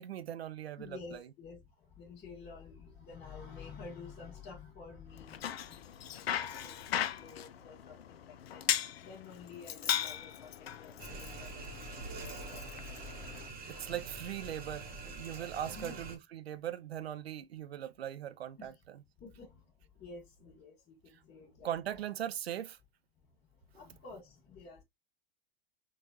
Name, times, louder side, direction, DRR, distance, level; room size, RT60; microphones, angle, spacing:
voice 1, 0.0-1.2 13.7-18.7 21.6-22.8, right 11 dB, 90° right, 0.5 m, -40 dB
voice 2, 0.8-8.6 9.0-12.7 13.7-13.9 15.7-16.0 18.6-18.8 19.2-22.0 23.2-24.8, left 4 dB, 35° left, 1.5 m, -51 dB
Bicycle, 5.1-13.5, left 10 dB, 80° left, 0.5 m, -38 dB
sound 1, 11.0-16.2, right 3 dB, 30° right, 1.0 m, -45 dB
3.8 x 2.4 x 2.7 m
hypercardioid pair, 90°, 30 cm